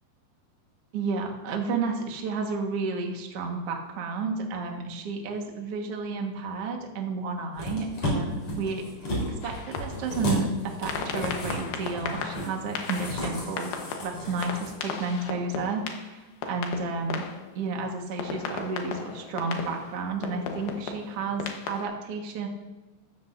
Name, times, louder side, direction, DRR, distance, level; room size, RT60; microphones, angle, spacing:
voice 1, 0.9-8.8 9.4-13.7 14.0-17.3 17.5-22.5, right 4 dB, 90° right, 1 dB, 1.3 m, -31 dB
sound 1, 7.5-14.7 15.1-15.2, left 1 dB, 35° left, 4.8 m, -34 dB
sound 2, 9.4-10.3 10.9-17.8 18.2-21.8, left 5 dB, 65° left, 2.7 m, -36 dB
15.0 x 13.5 x 2.6 m, 1.2 s
omnidirectional pair, 5.4 m